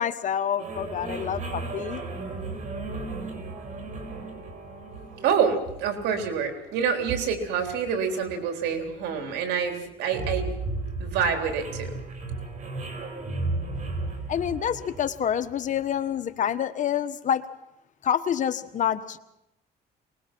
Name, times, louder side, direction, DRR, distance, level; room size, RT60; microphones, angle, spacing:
voice 1, 0.0-2.0 14.3-17.4 18.0-19.2, left 9 dB, 50° left, 10 dB, 1.3 m, -27 dB
sound 1, 0.6-16.0, right 2 dB, 45° right, 5.1 m, -36 dB
voice 2, 5.2-10.5 11.0-12.0, right 7 dB, 85° right, 6 dB, 3.7 m, -27 dB
24.0 x 20.0 x 6.2 m, 0.86 s
cardioid pair, 110°, 17 cm